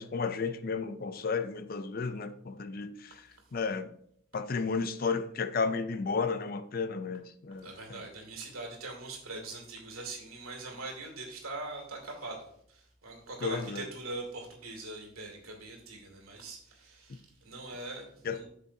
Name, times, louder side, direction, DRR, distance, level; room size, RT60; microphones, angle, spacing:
voice 1, 0.0-3.2 3.5-3.9 4.3-8.0 13.4-13.8 18.2-18.4, left 4 dB, 40° left, 0.4 m, -33 dB
voice 2, 7.6-18.5, right 2 dB, 75° right, 2.4 m, -42 dB
8.8 x 6.7 x 2.8 m
head